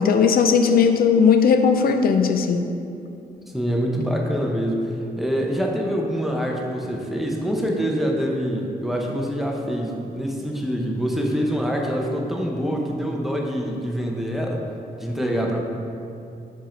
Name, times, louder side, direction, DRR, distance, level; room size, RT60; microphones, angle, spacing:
voice 1, 0.0-2.7, left 6 dB, 70° left, 7 dB, 0.4 m, -17 dB
voice 2, 3.5-14.6 15.0-15.6, equal, ahead, -1 dB, 0.7 m, -25 dB
5.4 x 4.4 x 5.1 m, 2.6 s
wide cardioid pair, 130°, 16 cm